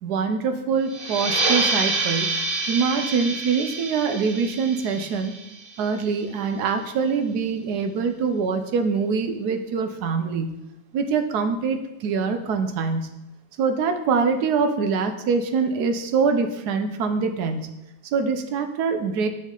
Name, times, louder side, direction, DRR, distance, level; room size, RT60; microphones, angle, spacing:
voice 1, 0.0-2.4 2.7-5.3 5.8-10.5 10.9-13.1 13.6-17.7 18.1-19.3, right 5 dB, 85° right, 7 dB, 1.3 m, -24 dB
sound 1, 0.9-6.1, right 3 dB, 40° right, 1.0 m, -27 dB
7.2 x 6.1 x 3.7 m, 0.93 s
omnidirectional pair, 1.7 m